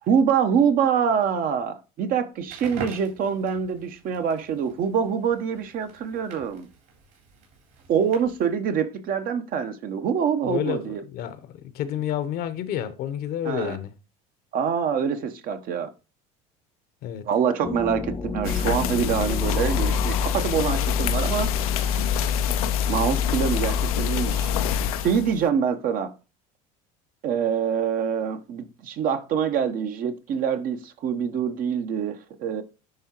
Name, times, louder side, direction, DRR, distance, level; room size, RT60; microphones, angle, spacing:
voice 1, 0.0-6.7 7.9-11.0 13.4-13.8 14.5-15.9 17.2-22.1 22.9-24.5 25.0-26.1 27.2-32.6, right 7 dB, 50° right, 0.9 m, -25 dB
Crackle, 2.4-8.5, right 4 dB, 70° right, 3.8 m, -44 dB
voice 2, 10.4-13.9 17.0-17.2, left 10 dB, 60° left, 0.9 m, -30 dB
sound 1, 17.6-23.1, left 3 dB, 20° left, 0.5 m, -34 dB
sound 2, 18.4-25.4, left 8 dB, 85° left, 0.6 m, -25 dB
10.5 x 3.6 x 2.9 m
hypercardioid pair, 85°, 18 cm